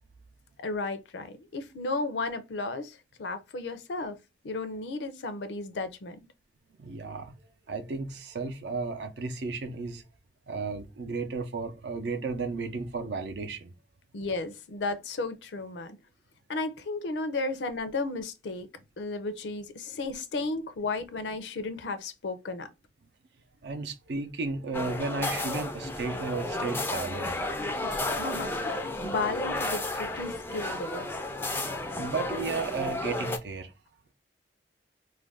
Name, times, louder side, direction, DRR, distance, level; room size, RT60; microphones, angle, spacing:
voice 1, 0.6-4.2 4.4-6.2 14.1-16.0 16.5-18.7 19.0-22.7 27.8-31.1, left 3 dB, 75° left, 0.5 m, -34 dB
voice 2, 6.8-7.3 7.7-10.0 10.5-13.7 23.6-27.4 32.0-33.7, right 4 dB, 70° right, 0.5 m, -34 dB
sound 1, 24.7-33.4, left 2 dB, 10° left, 0.3 m, -32 dB
2.5 x 2.2 x 3.4 m
head